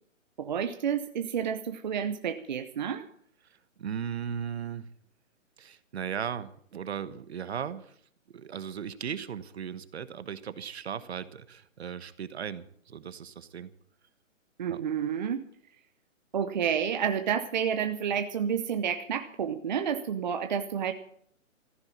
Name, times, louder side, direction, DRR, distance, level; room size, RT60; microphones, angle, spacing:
voice 1, 0.4-3.1 14.6-15.4 16.3-20.9, right 8 dB, 35° right, 8 dB, 0.8 m, -30 dB
voice 2, 3.8-4.9 5.6-7.9 8.3-13.7 14.7-14.8, right 8 dB, 55° right, 14 dB, 1.2 m, -37 dB
14.5 x 10.0 x 8.5 m, 0.62 s
hypercardioid pair, 160°, 39 cm